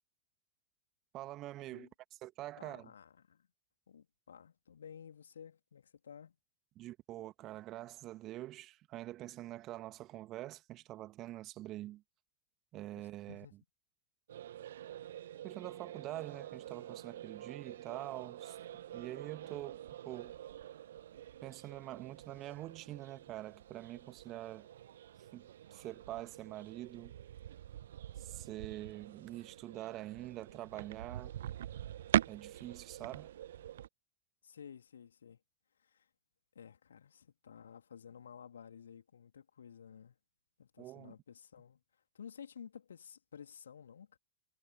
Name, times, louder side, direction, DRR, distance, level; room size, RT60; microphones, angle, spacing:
voice 1, 1.1-1.9 2.2-2.9 6.8-12.0 12.7-13.5 15.4-18.6 18.9-20.4 21.4-24.7 25.3-27.1 28.2-31.3 32.3-33.3 40.8-41.1, right 15 dB, 35° right, 1.9 m, -45 dB
voice 2, 2.6-3.5 3.9-6.4 12.9-13.5 34.4-35.4 35.8-36.1 36.5-40.2 40.6-41.8 42.1-44.2, left 7 dB, 70° left, 3.4 m, -53 dB
sound 1, 14.3-33.9, right 11 dB, 60° right, 0.6 m, -43 dB
figure-of-eight pair, 90°, 0 cm